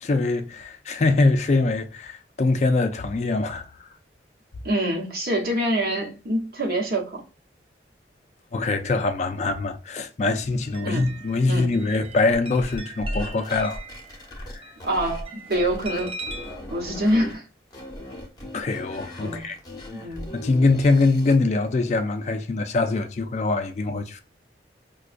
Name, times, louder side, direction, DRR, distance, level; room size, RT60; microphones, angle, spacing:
voice 1, 0.0-3.6 8.5-13.8 14.5-14.6 18.5-19.6 20.3-24.2, left 3 dB, 40° left, 0.3 m, -23 dB
voice 2, 4.6-7.2 10.8-11.2 11.4-11.8 14.8-16.1 16.7-17.4 19.2-19.5 19.9-20.3, right 1 dB, 55° right, 1.0 m, -25 dB
sound 1, 10.4-16.6, right 1 dB, 30° right, 0.4 m, -41 dB
sound 2, 12.3-15.2 15.5-17.3 17.7-21.4, equal, 20° left, 0.8 m, -37 dB
4.7 x 2.2 x 2.5 m
head